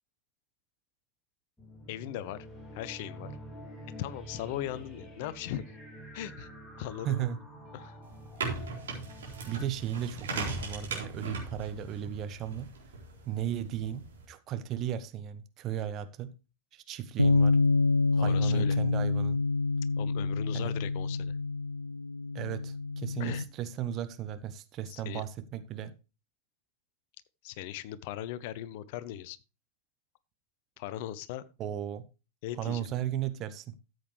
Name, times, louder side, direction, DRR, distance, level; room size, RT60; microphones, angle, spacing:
sound 1, 1.6-11.8, equal, 10° left, 4.1 m, -48 dB
voice 1, 1.9-2.5 2.7-3.4 4.0-5.6 6.1-6.5 6.8-7.3 7.7-8.0 18.2-18.8 20.0-21.4 23.2-23.5 24.9-25.2 27.4-29.4 30.8-31.4 32.4-32.9, left 12 dB, 50° left, 17 dB, 0.7 m, -38 dB
voice 2, 7.0-7.4 8.5-8.7 9.5-12.7 13.3-16.3 16.7-17.6 18.1-19.4 20.5-20.7 22.3-25.9 31.6-32.0 32.6-33.7, right 10 dB, 35° right, 11 dB, 1.0 m, -35 dB
sound 2, 8.0-14.2, right 3 dB, 65° right, 4.0 m, -39 dB
Bass guitar, 17.2-23.4, left 3 dB, 90° left, 0.4 m, -27 dB
13.5 x 7.9 x 3.2 m, 0.30 s
figure-of-eight pair, 90°, 0 cm